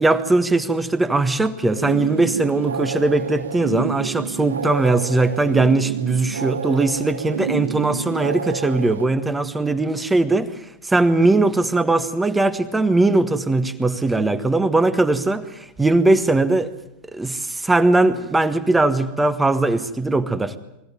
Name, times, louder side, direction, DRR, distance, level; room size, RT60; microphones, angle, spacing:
voice 1, 0.0-10.5 10.8-16.7 17.1-20.6, right 2 dB, 10° right, 11 dB, 1.5 m, -20 dB
sound 1, 1.7-9.1, right 6 dB, 65° right, 0.9 m, -29 dB
23.5 x 16.5 x 9.5 m, 0.88 s
figure-of-eight pair, 90°, 0 cm